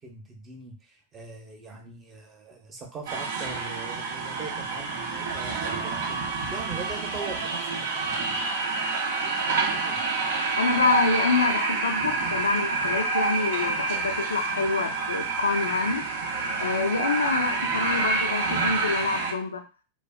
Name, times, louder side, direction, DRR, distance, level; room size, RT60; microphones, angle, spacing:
voice 1, 0.0-8.3 9.2-10.0, right 4 dB, 25° right, 2 dB, 0.8 m, -41 dB
sound 1, 3.1-19.3, right 4 dB, 55° right, 0.5 m, -28 dB
voice 2, 10.6-16.1 16.6-19.6, left 4 dB, 75° left, 4 dB, 0.4 m, -26 dB
2.6 x 2.2 x 2.3 m, 0.33 s
figure-of-eight pair, 90°, 0 cm